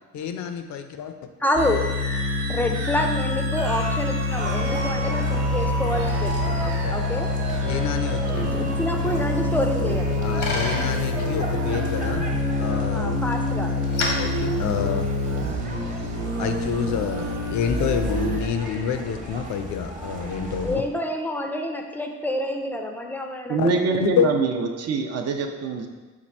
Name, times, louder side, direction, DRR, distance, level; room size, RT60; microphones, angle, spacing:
voice 1, 0.1-1.1 6.6-7.0 7.6-8.7 10.2-12.3 12.6-13.2 14.2-15.1 16.4-20.8 23.6-23.7 24.0-24.3, left 8 dB, 70° left, 7 dB, 0.4 m, -28 dB
voice 2, 1.4-1.9 2.5-6.5 6.9-7.3 8.5-10.1 12.9-13.7 20.6-24.1, left 1 dB, 5° left, 3 dB, 0.4 m, -27 dB
sound 1, 1.6-18.4, left 2 dB, 85° right, 0.8 m, -26 dB
sound 2, 4.4-20.8, right 1 dB, 25° right, 0.9 m, -36 dB
Bicycle, 9.8-15.5, left 2 dB, 90° left, 0.8 m, -34 dB
voice 3, 23.5-25.9, right 4 dB, 55° right, 4 dB, 0.5 m, -24 dB
4.4 x 2.4 x 4.2 m, 1.3 s
cardioid pair, 90°, 30 cm